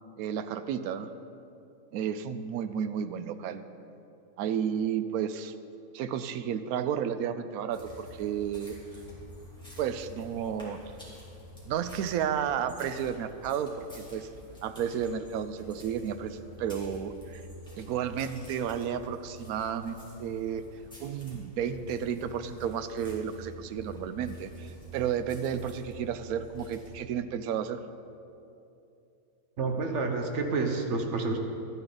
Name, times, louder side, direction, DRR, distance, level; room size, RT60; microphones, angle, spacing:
voice 1, 0.2-1.1 1.9-3.6 4.4-5.5 5.9-8.7 9.8-10.8 11.7-14.3 14.6-17.4 17.8-20.6 21.0-27.8, right 8 dB, 80° right, 11 dB, 1.0 m, -32 dB
sound 1, 7.7-26.9, equal, 5° left, 2.5 m, -48 dB
voice 2, 29.6-31.4, right 3 dB, 55° right, 4 dB, 1.1 m, -29 dB
13.0 x 9.6 x 3.9 m, 2.7 s
omnidirectional pair, 1.5 m